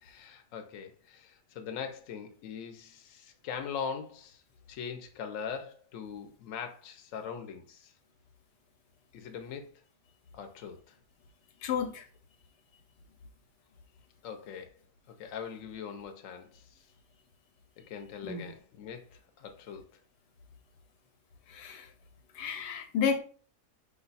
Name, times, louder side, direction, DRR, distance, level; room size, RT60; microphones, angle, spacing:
voice 1, 0.0-4.4 4.7-7.9 9.1-9.7 10.3-10.9 14.2-14.7 15.1-16.8 17.9-19.9, left 7 dB, 60° left, 1.0 m, -41 dB
voice 2, 11.6-12.1 18.2-18.5 21.5-21.9 22.3-23.2, left 6 dB, 90° left, 1.3 m, -32 dB
5.7 x 2.3 x 4.0 m
omnidirectional pair, 1.7 m